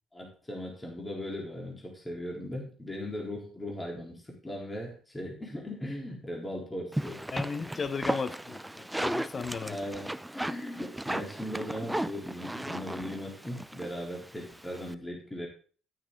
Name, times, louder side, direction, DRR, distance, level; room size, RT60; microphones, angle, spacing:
voice 1, 0.1-7.2 9.6-15.5, left 1 dB, 15° left, -1 dB, 3.9 m, -38 dB
sound 1, 6.9-14.9, right 1 dB, 10° right, 0.5 m, -36 dB
voice 2, 7.3-9.8, left 5 dB, 35° left, 12 dB, 0.8 m, -35 dB
10.5 x 9.2 x 3.8 m, 0.41 s
figure-of-eight pair, 50°, 0 cm